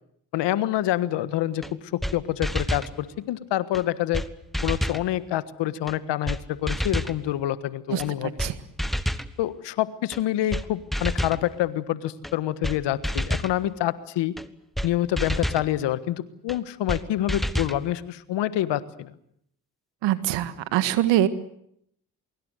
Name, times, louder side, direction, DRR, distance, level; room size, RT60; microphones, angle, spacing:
voice 1, 0.3-4.2 4.6-8.3 9.4-14.3 14.8-19.1, left 13 dB, 75° left, 15 dB, 1.5 m, -27 dB
sound 1, 1.6-1.7 2.0-2.1 2.4-2.9 3.7-3.8 4.1-4.3 4.5-5.0 5.9-6.0 6.3-6.4 6.7-7.2 8.0-8.1 8.4-8.5 8.8-9.3 10.1-10.2 10.5-10.6 10.9-11.4 12.2-12.3 12.6-12.8 13.0-13.5 14.4-14.5 14.8-14.9 15.2-15.6 16.5-16.6 16.9-17.0 17.3-17.8, equal, ahead, 1.7 m, -28 dB
voice 2, 20.0-21.3, right 13 dB, 80° right, 13 dB, 1.7 m, -23 dB
24.5 x 23.0 x 7.9 m, 0.72 s
hypercardioid pair, 50°, 43 cm